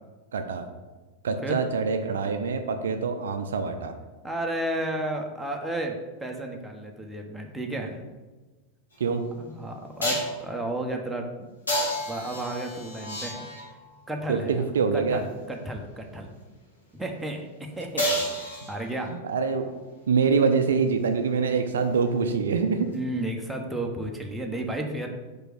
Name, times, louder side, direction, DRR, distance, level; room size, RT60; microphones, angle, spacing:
voice 1, 0.3-0.6 1.2-3.9 9.0-9.2 14.3-15.2 19.1-19.7 20.1-22.9, right 5 dB, 65° right, 7 dB, 0.6 m, -25 dB
voice 2, 4.2-8.0 9.4-11.5 12.0-13.5 14.1-14.6 14.9-16.3 16.9-18.1 18.3-19.2 22.9-25.1, right 1 dB, 5° right, 1 dB, 1.1 m, -33 dB
sound 1, 8.9-9.0 10.0-10.4 11.7-13.8 18.0-19.1 22.9-23.0, equal, 75° left, 2.1 m, -30 dB
5.0 x 4.7 x 6.2 m, 1.2 s
figure-of-eight pair, 90°, 0 cm